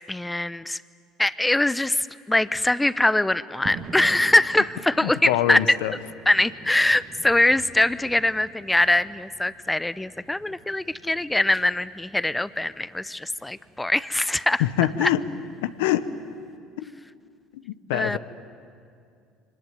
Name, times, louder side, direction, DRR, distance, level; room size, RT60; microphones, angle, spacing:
voice 1, 0.1-0.8 1.2-5.8 6.3-14.6 15.0-15.1 17.9-18.2, left 2 dB, 10° left, 17 dB, 0.7 m, -22 dB
sound 1, 3.7-16.6, right 5 dB, 45° right, 2.4 m, -46 dB
voice 2, 5.0-5.9 14.6-15.2 15.6-16.0 16.8-16.9 17.5-18.2, left 13 dB, 75° left, 12 dB, 1.0 m, -24 dB
25.0 x 19.5 x 9.3 m, 2.4 s
hypercardioid pair, 70°, 0 cm